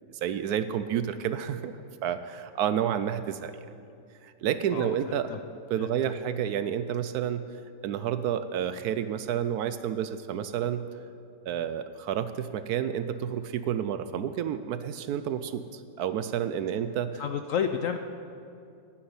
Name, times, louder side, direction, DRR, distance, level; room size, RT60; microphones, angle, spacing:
voice 1, 0.1-3.7 4.2-5.4 5.7-7.4 7.8-10.8 11.5-17.2, right 9 dB, 70° right, 11 dB, 1.0 m, -30 dB
voice 2, 5.8-6.1 17.2-18.0, left 7 dB, 70° left, 7 dB, 0.8 m, -31 dB
9.7 x 8.8 x 9.5 m, 2.4 s
omnidirectional pair, 1.8 m